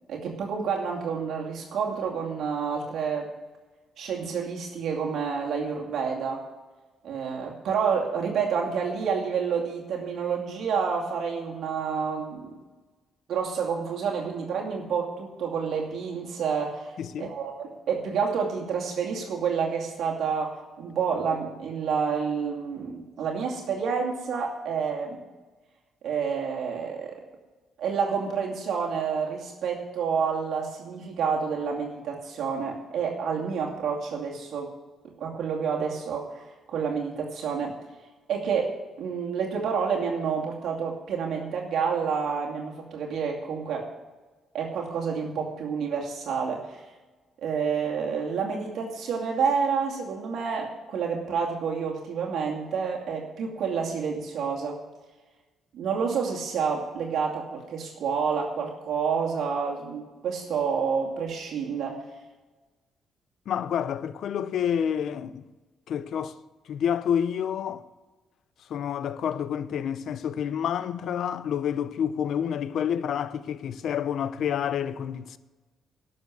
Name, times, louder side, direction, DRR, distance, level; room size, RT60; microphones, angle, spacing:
voice 1, 0.1-3.3 4.0-6.4 7.0-12.5 13.3-25.2 26.0-27.2 27.8-34.7 35.2-37.8 38.3-43.9 44.5-46.8 47.4-54.8 55.7-62.0, right 6 dB, 70° right, 2.5 m, -29 dB
voice 2, 17.0-17.3 63.5-65.4 65.9-66.4 66.7-67.8 68.7-75.4, left 8 dB, 70° left, 0.7 m, -28 dB
12.0 x 7.0 x 9.5 m
cardioid pair, 90°, 0 cm